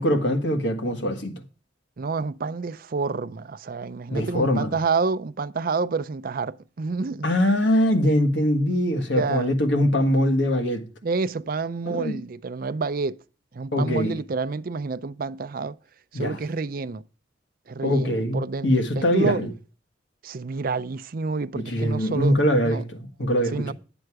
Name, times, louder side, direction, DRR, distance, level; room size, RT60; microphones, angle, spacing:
voice 1, 0.0-1.4 4.1-4.7 7.2-10.8 11.9-12.2 13.7-14.2 16.1-16.4 17.8-19.5 21.5-23.7, equal, 65° left, 1.5 m, -22 dB
voice 2, 2.0-7.3 9.1-9.5 11.0-13.2 13.5-15.8 16.1-17.0 17.7-19.4 20.2-22.4 22.6-22.8 23.5-23.7, right 4 dB, 50° right, 0.5 m, -28 dB
11.0 x 7.9 x 4.6 m
head